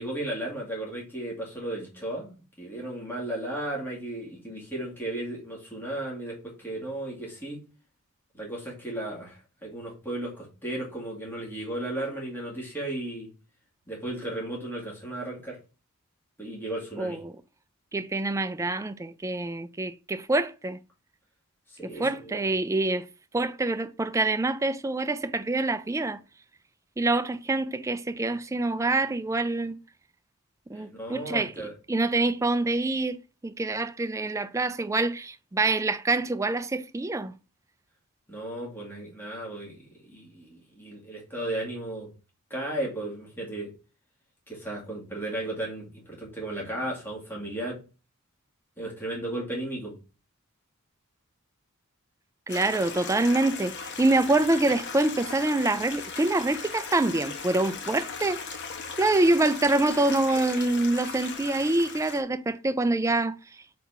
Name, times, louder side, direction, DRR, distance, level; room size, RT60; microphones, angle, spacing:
voice 1, 0.0-7.6 8.3-13.3 13.9-15.6 16.4-17.2 21.7-22.4 30.7-31.7 38.3-42.1 42.5-43.7 44.5-47.8 48.8-50.0, right 1 dB, 10° left, 2.2 m, -35 dB
voice 2, 17.0-17.3 17.9-20.8 21.8-23.0 23.3-26.2 27.0-29.8 30.7-31.5 31.9-33.2 33.4-37.3 52.5-58.5 59.0-63.3, right 2 dB, 15° right, 0.3 m, -26 dB
Stream, 52.5-62.2, left 5 dB, 55° left, 1.0 m, -38 dB
4.2 x 4.2 x 5.6 m
head